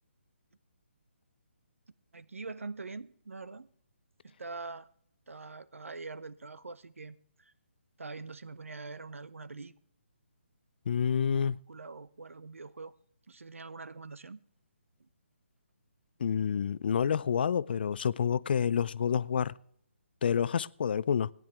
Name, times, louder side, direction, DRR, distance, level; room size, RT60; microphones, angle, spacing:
voice 1, 2.1-3.7 4.2-4.9 5.3-7.5 8.0-9.8 11.7-12.9 13.3-14.4, right 3 dB, 90° right, 0.7 m, -44 dB
voice 2, 10.9-11.6 16.2-19.5 20.2-21.3, left 7 dB, 50° left, 0.4 m, -28 dB
17.0 x 10.0 x 3.4 m
hypercardioid pair, 155°, 7 cm